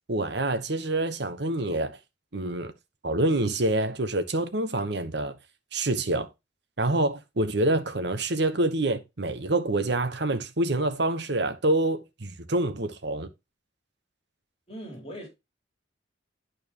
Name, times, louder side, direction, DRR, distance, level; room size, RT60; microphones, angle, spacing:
voice 1, 0.1-2.0 2.3-2.7 3.0-5.4 5.7-6.3 6.8-13.3, right 2 dB, 65° right, 1.2 m, -26 dB
voice 2, 14.7-15.3, equal, 35° left, 3.6 m, -39 dB
11.0 x 4.7 x 3.1 m
head